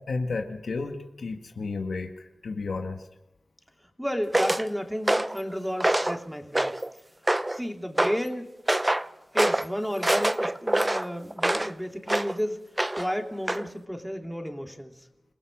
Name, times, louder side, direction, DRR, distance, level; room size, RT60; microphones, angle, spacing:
voice 1, 0.1-3.0, left 3 dB, 85° left, 4 dB, 1.9 m, -32 dB
voice 2, 4.0-6.7 7.5-8.5 9.3-15.0, equal, ahead, 3 dB, 2.9 m, -32 dB
sound 1, 4.3-4.7 5.1-5.4 5.8-6.2 6.6-6.9 7.3-7.6 8.0-8.2 8.7-9.1 9.4-9.7 10.0-11.7 12.1-12.4 12.8-13.1 13.5-13.7, right 1 dB, 25° right, 0.7 m, -25 dB
27.0 x 18.0 x 5.3 m, 0.92 s
cardioid pair, 40°, 0 cm